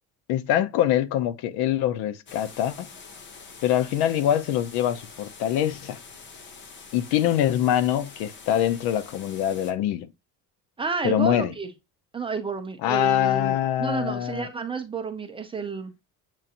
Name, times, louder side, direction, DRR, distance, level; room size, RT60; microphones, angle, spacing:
voice 1, 0.3-2.9 3.6-6.0 6.9-10.1 11.0-11.5 12.8-14.5, left 11 dB, 85° left, 0.6 m, -24 dB
sound 1, 2.3-9.7, left 5 dB, 30° left, 0.6 m, -45 dB
voice 2, 10.8-11.7 12.1-15.9, right 5 dB, 15° right, 0.3 m, -30 dB
7.3 x 2.5 x 2.7 m
cardioid pair, 165°, 38 cm